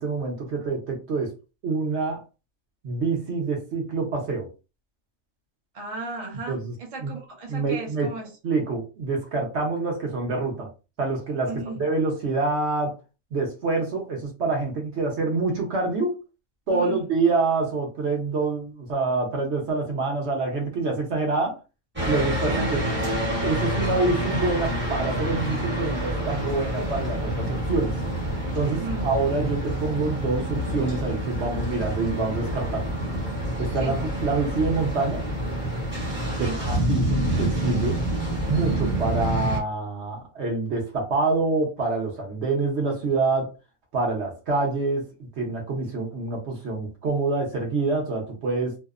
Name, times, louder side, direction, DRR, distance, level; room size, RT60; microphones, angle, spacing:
voice 1, 0.0-1.3 1.6-2.2 2.8-4.5 6.5-6.7 7.0-7.2 7.5-8.1 8.4-10.7 11.0-11.5 11.8-12.9 13.3-16.2 16.7-21.6 22.0-22.8 23.4-28.0 28.5-32.9 33.6-35.2 36.4-38.0 38.5-43.5 43.9-45.1 45.4-48.8, right 3 dB, 60° right, 0.9 m, -26 dB
voice 2, 5.7-8.3 11.5-11.8 16.7-17.0 22.5-22.7 28.7-29.1 33.8-34.0 36.3-36.7, right 3 dB, 40° right, 0.5 m, -35 dB
sound 1, 22.0-39.6, right 1 dB, 10° right, 0.8 m, -27 dB
2.7 x 2.0 x 2.3 m
omnidirectional pair, 1.5 m